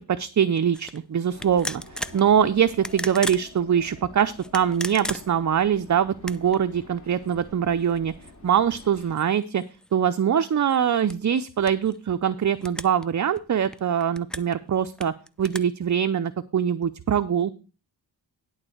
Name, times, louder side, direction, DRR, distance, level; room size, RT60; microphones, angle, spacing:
voice 1, 0.1-1.8 2.1-8.1 8.4-9.6 9.9-15.1 15.4-17.5, right 8 dB, 45° right, 9 dB, 0.6 m, -23 dB
sound 1, 0.7-1.0 1.4-2.2 2.7-3.5 4.4-5.5 6.1-6.6 7.3-7.4 7.8-9.9 10.4-12.0 12.6-13.0 13.3-14.5 15.0-15.6, equal, ahead, 0.4 m, -36 dB
sound 2, 1.3-9.2, left 2 dB, 40° left, 3.2 m, -48 dB
11.0 x 3.9 x 7.6 m, 0.34 s
wide cardioid pair, 95°, 43 cm